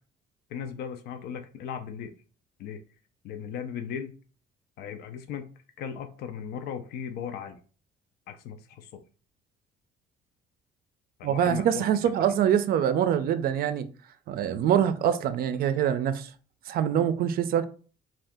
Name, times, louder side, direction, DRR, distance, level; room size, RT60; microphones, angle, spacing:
voice 1, 0.5-2.1 2.6-2.8 3.2-4.2 4.8-5.5 5.8-7.6 8.3-9.0 11.2-11.9, left 8 dB, 70° left, 0.4 m, -37 dB
voice 2, 11.2-13.9 14.3-16.3 16.7-17.6, right 9 dB, 60° right, 0.4 m, -24 dB
2.6 x 2.3 x 3.5 m
cardioid pair, 110°, 17 cm